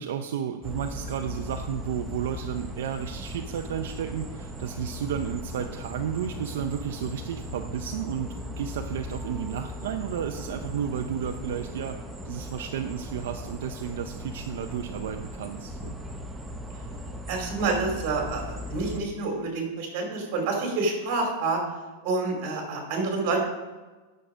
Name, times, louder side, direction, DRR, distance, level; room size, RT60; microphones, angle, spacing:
voice 1, 0.0-12.0 12.2-15.9, right 8 dB, 75° right, 5 dB, 0.6 m, -32 dB
sound 1, 0.6-19.0, left 1 dB, 5° right, 0.6 m, -38 dB
voice 2, 17.3-21.6 22.0-23.4, right 3 dB, 45° right, 1 dB, 2.6 m, -28 dB
10.0 x 6.5 x 4.9 m, 1.2 s
supercardioid pair, 170°, 0 cm